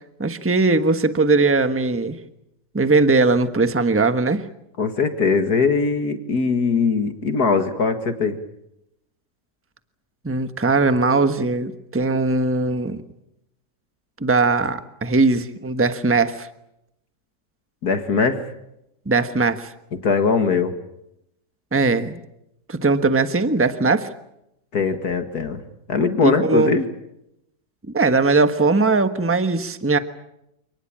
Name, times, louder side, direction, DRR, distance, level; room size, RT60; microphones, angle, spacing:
voice 1, 0.2-2.1 2.7-4.4 10.2-13.0 14.2-16.5 19.1-19.7 21.7-22.2 22.7-24.1 26.2-26.7 27.9-30.0, right 3 dB, 10° right, 9 dB, 1.1 m, -19 dB
voice 2, 4.8-8.4 17.8-18.4 19.9-20.7 24.7-25.6 25.9-26.9, left 5 dB, 60° left, 7 dB, 2.3 m, -21 dB
28.5 x 19.5 x 8.9 m, 0.84 s
omnidirectional pair, 1.9 m